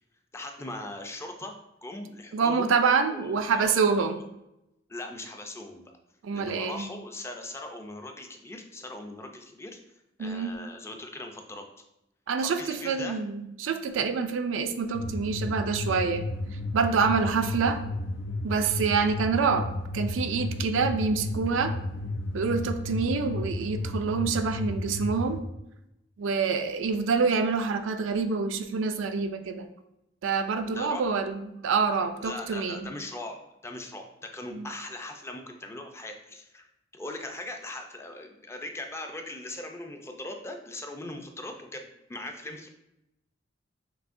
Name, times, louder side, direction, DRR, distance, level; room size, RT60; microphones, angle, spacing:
voice 1, 0.3-2.7 3.1-4.2 4.9-5.9 6.3-9.8 10.2-11.7 12.4-13.2 30.7-31.0 32.2-33.4 33.6-36.7 36.9-42.7, left 2 dB, 15° left, 4 dB, 0.4 m, -40 dB
voice 2, 2.3-4.2 6.2-6.9 10.2-10.5 12.3-16.2 16.7-17.8 18.4-19.7 19.9-21.7 22.3-25.4 26.2-29.7 30.2-32.9 34.5-34.7, right 5 dB, 85° right, 8 dB, 0.4 m, -26 dB
sound 1, 14.9-25.4, left 2 dB, 85° left, 0.5 m, -33 dB
6.0 x 2.7 x 2.5 m, 0.87 s
head